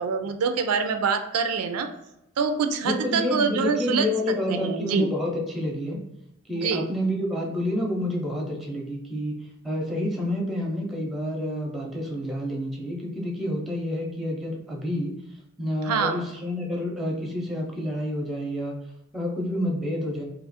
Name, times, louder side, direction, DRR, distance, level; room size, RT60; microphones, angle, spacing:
voice 1, 0.0-1.9 2.4-4.1 4.5-5.1 6.6-6.9 15.8-16.2, right 5 dB, 85° right, 7 dB, 0.4 m, -25 dB
voice 2, 2.8-6.0 6.5-9.3 9.6-15.1 15.6-18.8 19.1-20.2, left 1 dB, ahead, -2 dB, 0.6 m, -28 dB
2.7 x 2.4 x 4.0 m, 0.85 s
head